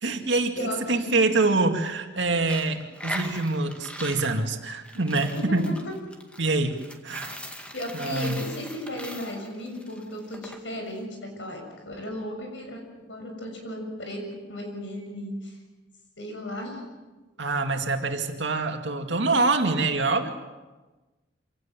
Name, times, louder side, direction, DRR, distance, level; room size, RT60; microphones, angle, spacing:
voice 1, 0.0-5.7 6.4-7.4 7.9-8.4 17.4-20.3, right 3 dB, 80° right, 4 dB, 2.3 m, -25 dB
voice 2, 0.5-1.2 5.3-5.9 7.7-12.8 13.1-14.2 14.5-15.6 16.2-16.8, left 1 dB, 90° left, 3 dB, 6.8 m, -35 dB
Coin (dropping), 2.4-10.6, equal, 5° left, 2.1 m, -40 dB
26.5 x 17.5 x 7.5 m, 1.2 s
head